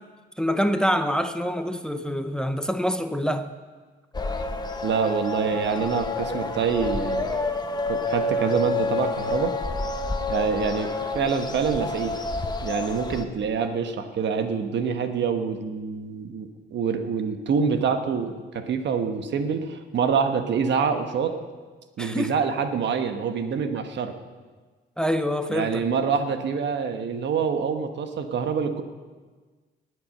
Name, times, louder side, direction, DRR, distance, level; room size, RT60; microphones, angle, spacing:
voice 1, 0.4-3.5 22.0-22.3 25.0-25.8, equal, 5° left, 9 dB, 0.7 m, -25 dB
sound 1, 4.1-13.2, left 2 dB, 20° left, 1.1 m, -28 dB
voice 2, 4.8-7.5 7.9-9.5 10.3-12.2 12.6-21.4 22.0-24.2 25.5-28.8, right 6 dB, 65° right, 7 dB, 1.3 m, -26 dB
19.0 x 8.1 x 6.6 m, 1.4 s
cardioid pair, 90°, 20 cm